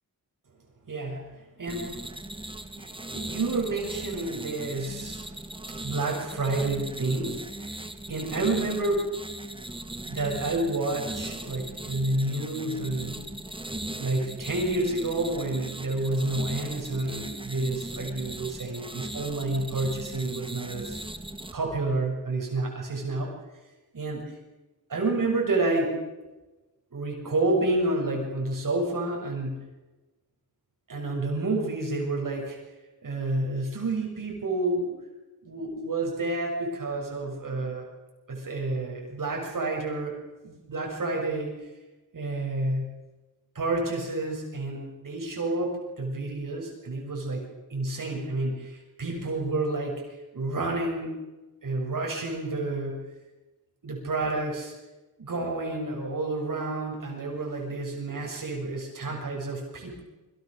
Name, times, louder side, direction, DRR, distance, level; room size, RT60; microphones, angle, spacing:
voice 1, 0.9-2.2 2.7-5.3 5.7-9.1 10.0-13.3 14.0-21.0 21.5-23.3 23.9-24.2 24.9-26.0 26.9-29.7 30.9-32.6 33.0-34.9 35.4-37.8 38.3-40.2 40.4-41.6 42.1-43.0 43.5-47.4 47.7-50.0 50.3-51.2 51.6-53.1 53.8-54.7 55.2-60.0, right 2 dB, 60° right, 0 dB, 6.8 m, -29 dB
sound 1, 1.7-21.5, right 1 dB, 15° right, 1.7 m, -38 dB
28.0 x 24.0 x 6.8 m, 1.1 s
wide cardioid pair, 130°, 37 cm